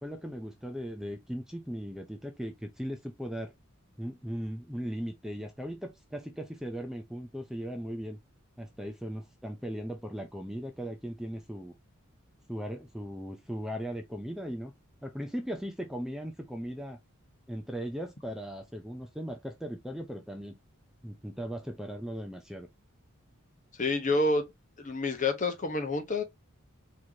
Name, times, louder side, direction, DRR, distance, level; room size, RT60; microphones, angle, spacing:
voice 1, 0.0-3.5 4.0-8.2 8.6-11.7 12.5-14.7 15.0-17.0 17.5-20.6 21.0-22.7, equal, ahead, 0.5 m, -38 dB
voice 2, 23.8-24.5 24.8-26.2, left 2 dB, 35° left, 1.0 m, -28 dB
4.5 x 3.0 x 2.7 m
head